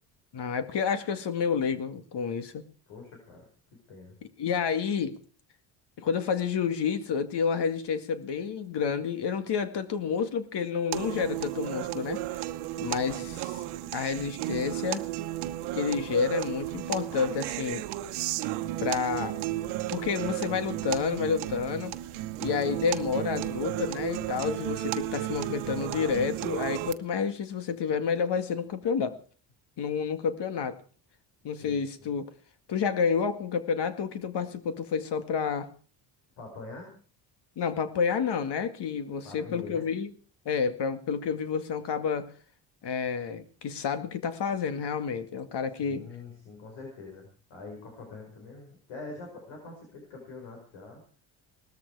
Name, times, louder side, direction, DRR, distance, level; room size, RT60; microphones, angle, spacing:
voice 1, 0.3-2.6 4.4-5.2 6.0-12.2 12.8-13.6 13.9-15.1 15.7-17.9 18.8-19.3 19.9-22.0 22.4-29.2 29.8-30.8 31.4-32.3 32.7-35.7 37.6-40.1 40.5-42.3 42.8-46.1, left 6 dB, 60° left, 10 dB, 2.1 m, -29 dB
voice 2, 2.9-3.5 3.9-4.2 31.6-32.1 36.4-36.9 39.2-39.9 45.8-51.0, left 3 dB, 85° left, 2 dB, 5.6 m, -44 dB
sound 1, 10.9-26.9, right 15 dB, 85° right, 1.1 m, -33 dB
19.0 x 13.5 x 4.8 m, 0.42 s
supercardioid pair, 75°, 47 cm